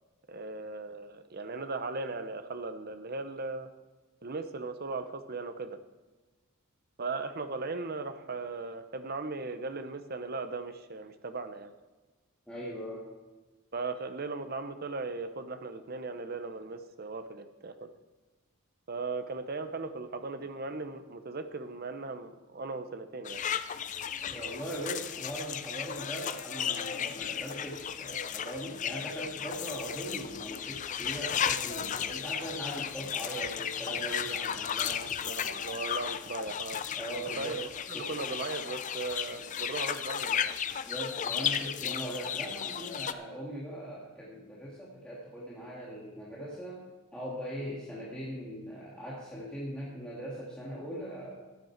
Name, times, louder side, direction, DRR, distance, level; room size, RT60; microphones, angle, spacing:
voice 1, 0.3-3.7 4.2-5.8 7.0-11.7 13.7-17.9 18.9-23.4 35.2-36.8 37.4-40.4, right 3 dB, 45° right, 9 dB, 0.8 m, -38 dB
voice 2, 12.5-13.1 24.3-35.1 37.0-37.6 37.9-38.1 39.3-39.5 40.9-46.8 47.1-51.4, right 1 dB, 5° left, -7 dB, 1.8 m, -40 dB
sound 1, 23.2-43.1, left 8 dB, 35° left, 0.4 m, -34 dB
13.5 x 9.1 x 4.5 m, 1.2 s
head